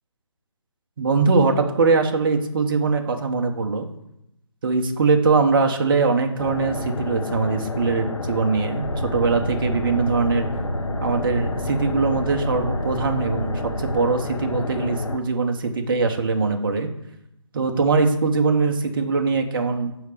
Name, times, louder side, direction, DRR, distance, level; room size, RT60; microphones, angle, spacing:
voice 1, 1.0-3.9 4.6-10.5 11.0-16.9 17.5-19.9, right 4 dB, 45° right, 4 dB, 1.1 m, -22 dB
sound 1, 6.4-15.2, left 3 dB, 85° left, 0.8 m, -30 dB
sound 2, 8.8-13.9 14.6-15.3, right 1 dB, 20° right, 1.7 m, -31 dB
6.3 x 5.1 x 6.7 m, 0.82 s
figure-of-eight pair, 160°, 16 cm